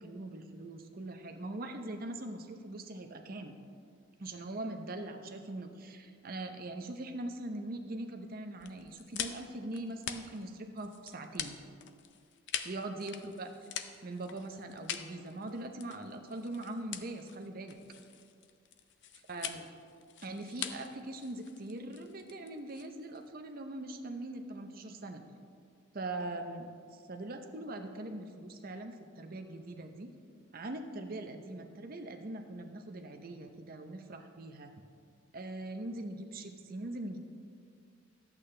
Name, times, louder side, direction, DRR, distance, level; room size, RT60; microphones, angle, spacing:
voice 1, 0.0-3.6 4.2-11.6 12.6-13.7 14.0-17.8 19.3-19.7 20.2-25.2 25.9-30.1 30.5-34.7 35.3-37.2, right 2 dB, 45° right, 5 dB, 0.7 m, -42 dB
sound 1, 8.6-23.3, left 9 dB, 60° left, 0.5 m, -44 dB
11.5 x 8.3 x 3.3 m, 2.2 s
head